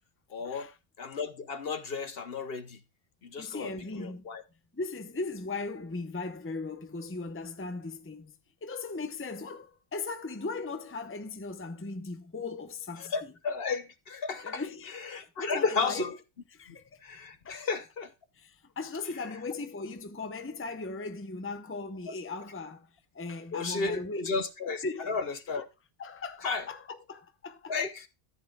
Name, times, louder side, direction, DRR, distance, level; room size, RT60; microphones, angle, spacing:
voice 1, 0.3-0.7 1.0-2.8 3.2-3.7 4.0-4.4 13.0-14.6 14.9-16.1 17.0-18.1 23.5-25.7 26.4-26.7 27.7-28.1, left 4 dB, 55° left, 1.1 m, -33 dB
voice 2, 3.4-4.2 4.7-8.3 8.6-13.1 14.4-16.1 16.5-17.0 17.4-17.7 18.4-22.9 23.1-24.4 24.8-25.1 26.0-27.8, left 3 dB, 15° left, 0.7 m, -38 dB
13.5 x 8.5 x 2.3 m
omnidirectional pair, 1.2 m